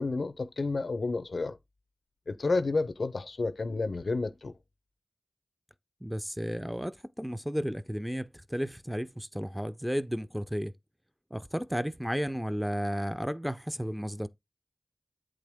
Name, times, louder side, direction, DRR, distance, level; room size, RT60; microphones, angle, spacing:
voice 1, 0.0-1.6 2.3-4.5, left 3 dB, 75° left, 0.5 m, -30 dB
voice 2, 6.0-10.7 11.3-14.3, equal, 5° right, 0.5 m, -33 dB
8.1 x 3.7 x 3.5 m
cardioid pair, 45°, 0 cm